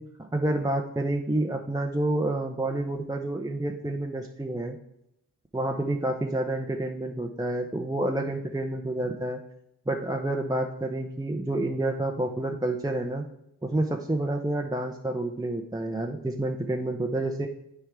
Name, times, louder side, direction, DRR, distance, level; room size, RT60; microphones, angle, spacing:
voice 1, 0.0-4.8 5.5-9.4 9.9-13.2 13.6-17.5, right 1 dB, 10° right, 2 dB, 0.7 m, -29 dB
10.0 x 4.5 x 3.6 m, 0.81 s
cardioid pair, 50°, 42 cm